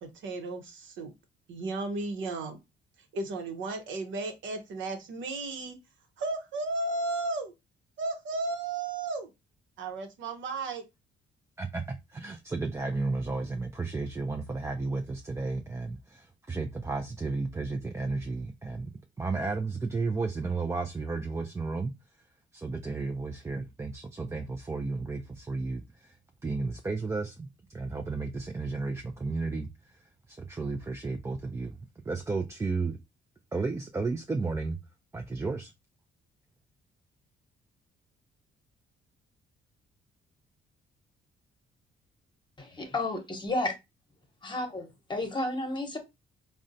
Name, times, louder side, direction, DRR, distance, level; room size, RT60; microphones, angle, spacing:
voice 1, 0.0-1.1 1.5-2.6 3.1-5.8 6.2-7.5 8.0-9.3 9.8-10.8, right 3 dB, 75° right, 0.8 m, -34 dB
voice 2, 11.6-18.9 19.2-21.9 22.5-26.2 26.4-30.0 30.3-31.8 32.1-33.0 33.5-34.8 35.1-35.7, right 3 dB, 15° right, 0.3 m, -33 dB
voice 3, 42.6-43.7 44.4-46.0, left 2 dB, 25° left, 1.0 m, -32 dB
3.7 x 2.1 x 2.6 m
cardioid pair, 90°, 20 cm